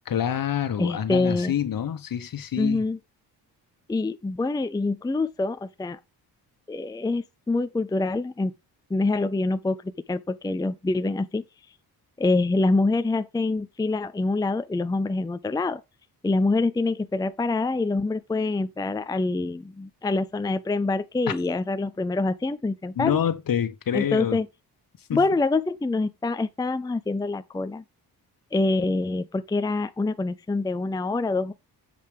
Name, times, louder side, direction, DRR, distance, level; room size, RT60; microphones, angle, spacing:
voice 1, 0.1-2.8 23.0-24.4 25.1-25.2, left 9 dB, 60° left, 1.4 m, -27 dB
voice 2, 0.8-1.5 2.6-3.0 3.9-6.0 6.7-8.5 8.9-11.4 12.2-15.8 16.2-23.2 23.9-24.5 25.1-27.8 28.5-31.5, left 3 dB, 10° left, 0.5 m, -25 dB
7.7 x 5.2 x 4.9 m
cardioid pair, 90°, 39 cm